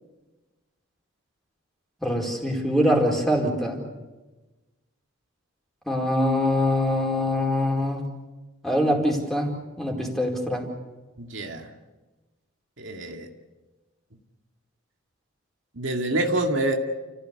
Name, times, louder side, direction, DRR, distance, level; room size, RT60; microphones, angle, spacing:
voice 1, 2.0-3.8 5.9-8.0 8.6-9.5 9.8-10.6, left 1 dB, ahead, 0 dB, 4.6 m, -23 dB
voice 2, 11.2-11.7 12.8-13.3 15.7-16.7, right 2 dB, 65° right, 2 dB, 2.3 m, -26 dB
30.0 x 15.5 x 8.4 m, 1.2 s
head